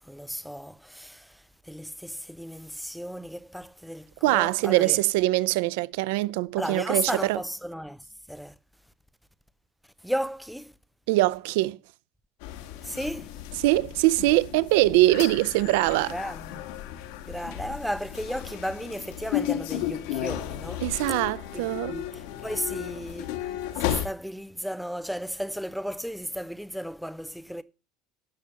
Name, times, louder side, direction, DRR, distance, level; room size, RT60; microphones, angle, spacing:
voice 1, 0.1-5.0 6.6-8.0 8.3-8.5 10.0-10.7 12.8-13.3 16.1-16.7 17.2-21.2 21.5-23.3 23.8-27.6, equal, ahead, 0.6 m, -34 dB
voice 2, 4.2-7.4 11.1-11.8 13.6-16.1 20.8-22.0, right 18 dB, 85° right, 0.5 m, -23 dB
munich subway, 12.4-24.1, left 12 dB, 90° left, 1.8 m, -34 dB
11.5 x 6.3 x 6.8 m
cardioid pair, 165°, 0 cm